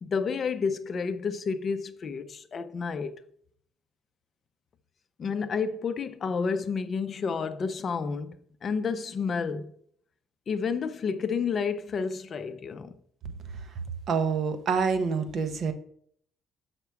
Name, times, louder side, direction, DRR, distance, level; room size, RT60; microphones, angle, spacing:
voice 1, 0.0-3.1 5.2-9.7 10.5-12.9, left 5 dB, 35° left, 0.6 m, -30 dB
voice 2, 14.1-15.7, right 5 dB, 50° right, 0.8 m, -26 dB
6.6 x 5.8 x 4.6 m
cardioid pair, 145°, 0 cm